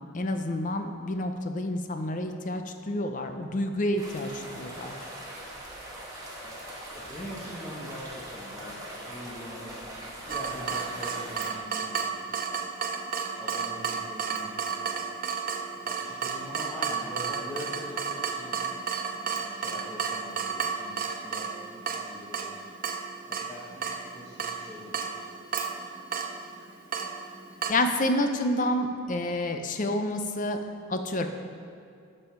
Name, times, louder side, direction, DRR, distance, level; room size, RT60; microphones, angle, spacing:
voice 1, 0.1-4.9 27.7-30.6 30.9-31.3, left 1 dB, 40° left, 7 dB, 0.6 m, -29 dB
sound 1, 4.0-11.5, right 1 dB, 15° right, 1.3 m, -41 dB
voice 2, 5.7-6.0 6.9-9.9 10.3-12.4 13.2-14.6 15.7-18.6 19.4-22.7 23.3-25.2, equal, 15° left, -7 dB, 1.2 m, -43 dB
Water tap faucet / Drip, 10.3-27.7, right 6 dB, 40° right, 0.6 m, -33 dB
12.5 x 5.5 x 4.5 m, 2.4 s
head